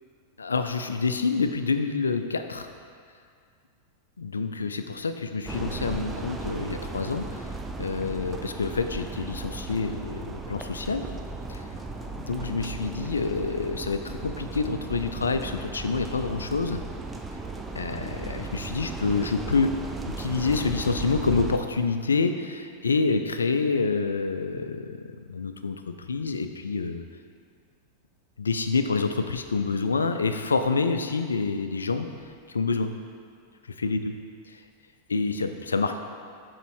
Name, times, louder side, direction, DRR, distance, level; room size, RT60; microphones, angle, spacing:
voice 1, 0.4-2.7 4.2-7.5 7.8-11.0 11.5-11.6 12.2-16.8 17.8-19.7 20.1-27.0 28.4-32.1 32.5-32.9 33.8-34.1 34.5-34.6 35.1-35.9, left 4 dB, 75° left, 8 dB, 0.3 m, -27 dB
sound 1, 5.5-21.6, right 3 dB, 15° right, 0.4 m, -36 dB
6.7 x 4.0 x 4.6 m, 2.2 s
figure-of-eight pair, 90°, 0 cm